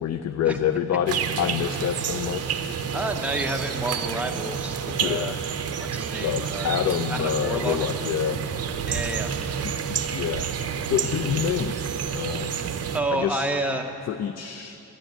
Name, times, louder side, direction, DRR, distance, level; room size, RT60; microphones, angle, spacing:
voice 1, 0.0-2.6 4.9-5.4 6.2-8.4 9.6-10.5 10.8-11.8 12.1-12.5 13.1-13.5 14.1-14.8, left 9 dB, 50° left, 10 dB, 0.4 m, -27 dB
sound 1, 1.1-13.0, right 7 dB, 45° right, 0.6 m, -29 dB
voice 2, 2.9-5.4 5.8-6.7 7.1-7.8 8.9-9.9 12.9-13.9, right 1 dB, 5° right, 2 dB, 0.7 m, -30 dB
10.0 x 9.7 x 9.0 m, 2.8 s
wide cardioid pair, 160°, 36 cm